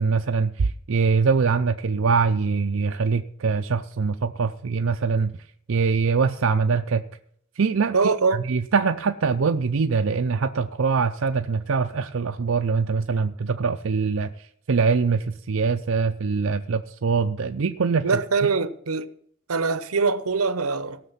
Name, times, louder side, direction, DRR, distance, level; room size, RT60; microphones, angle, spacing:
voice 1, 0.0-5.3 5.7-7.0 7.6-8.0 8.3-18.2, right 5 dB, 70° right, 0.5 m, -23 dB
voice 2, 7.9-8.4 18.0-19.1 19.5-21.0, right 4 dB, 90° right, 0.9 m, -23 dB
17.5 x 6.6 x 5.7 m
head